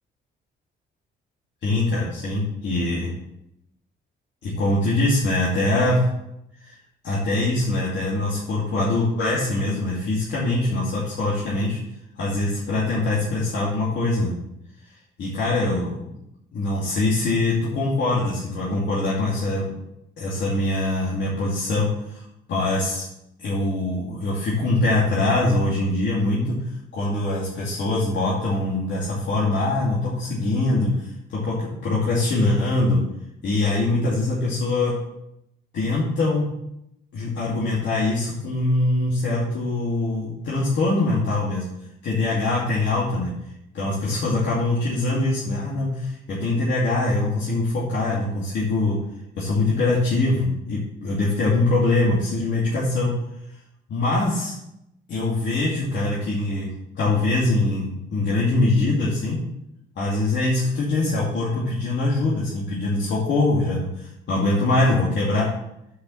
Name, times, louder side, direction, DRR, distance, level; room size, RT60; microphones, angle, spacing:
voice 1, 1.6-3.1 4.4-6.0 6.6-6.8 7.0-11.8 12.2-14.3 15.2-16.1 16.5-19.7 20.2-23.1 23.4-26.6 26.9-33.0 33.4-34.9 35.7-36.5 37.1-41.6 42.0-43.3 43.7-49.0 49.4-53.1 53.9-54.5 55.1-56.7 57.0-59.4 60.0-65.5, left 2 dB, 65° left, -6 dB, 2.6 m, -23 dB
6.8 x 5.6 x 7.1 m, 0.82 s
cardioid pair, 90°, 20 cm